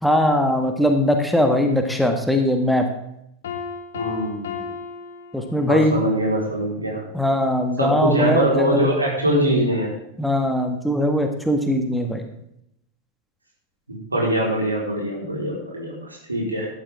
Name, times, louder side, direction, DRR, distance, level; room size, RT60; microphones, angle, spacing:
voice 1, 0.0-2.8 5.3-6.0 7.1-8.9 10.2-12.2, left 1 dB, ahead, 4 dB, 1.6 m, -20 dB
Piano, 3.4-6.0, left 6 dB, 60° left, 1.5 m, -34 dB
voice 2, 3.9-4.7 5.6-7.0 7.8-9.9 13.9-16.7, equal, 80° right, -2 dB, 4.4 m, -23 dB
14.0 x 12.0 x 3.6 m, 0.77 s
figure-of-eight pair, 90°, 0 cm